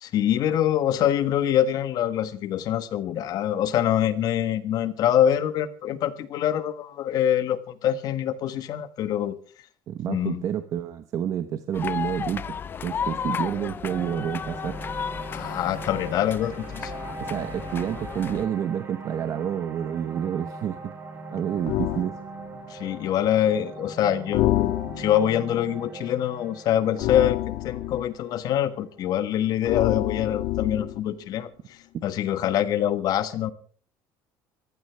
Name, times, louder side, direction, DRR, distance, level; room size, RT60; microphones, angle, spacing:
voice 1, 0.0-9.4 10.1-10.4 15.3-16.9 22.7-27.4 27.6-33.5, left 10 dB, 50° left, 13 dB, 1.3 m, -25 dB
voice 2, 9.9-12.5 12.8-14.8 17.2-20.9 21.3-22.2, right 9 dB, 40° right, 9 dB, 1.0 m, -29 dB
sound 1, 11.7-18.5, left 7 dB, 25° left, 0.6 m, -33 dB
sound 2, 13.8-30.1, right 2 dB, 25° right, 3.8 m, -40 dB
sound 3, 21.7-22.1 24.3-25.3 27.0-28.1 29.6-31.0, left 16 dB, 70° left, 0.6 m, -27 dB
22.5 x 15.0 x 3.4 m, 0.43 s
cardioid pair, 160°, 8 cm